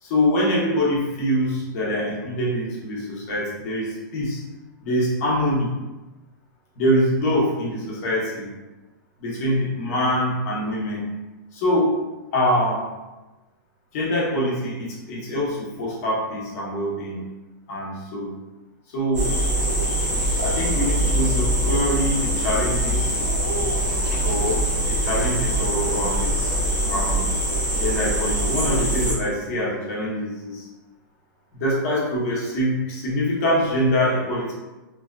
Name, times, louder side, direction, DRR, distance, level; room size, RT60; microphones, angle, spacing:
voice 1, 0.0-4.4 4.8-5.7 6.8-8.5 9.2-11.1 11.5-12.0 12.3-12.9 13.9-17.3 17.7-18.3 18.9-19.3 20.4-23.3 24.2-24.6 24.9-26.5 26.8-27.2 27.8-30.7 31.5-34.5, equal, 45° left, -5 dB, 0.9 m, -24 dB
sound 1, 19.1-29.1, right 1 dB, 5° right, 0.6 m, -23 dB
2.8 x 2.2 x 2.3 m, 1.1 s
hypercardioid pair, 160°, 11 cm